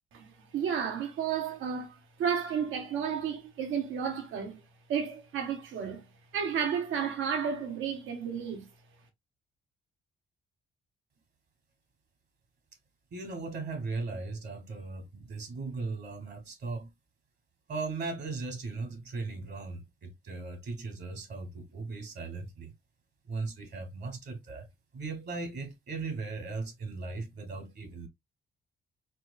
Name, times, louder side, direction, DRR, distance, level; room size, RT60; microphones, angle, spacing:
voice 1, 0.1-4.6 4.9-6.0 6.3-8.7, right 7 dB, 85° right, 1.2 m, -32 dB
voice 2, 13.1-16.9 17.7-22.7 23.3-24.7 24.9-28.1, right 3 dB, 60° right, 1.5 m, -38 dB
4.4 x 2.5 x 2.5 m
cardioid pair, 90°, 20 cm